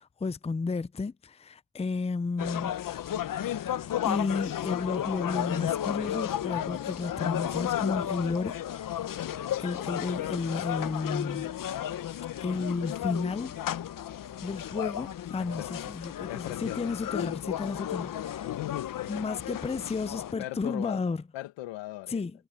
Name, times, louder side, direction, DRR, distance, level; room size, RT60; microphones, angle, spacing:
voice 1, 0.0-2.8 3.7-9.2 9.6-11.5 12.4-13.6 14.4-18.5 19.1-21.2 22.1-22.3, left 4 dB, 15° left, 0.7 m, -32 dB
sound 1, 2.4-20.3, left 11 dB, 45° left, 1.0 m, -33 dB
voice 2, 16.3-17.0 18.4-19.1 20.4-21.0 21.3-22.2, left 17 dB, 80° left, 2.1 m, -39 dB
supercardioid pair, 70°, 44 cm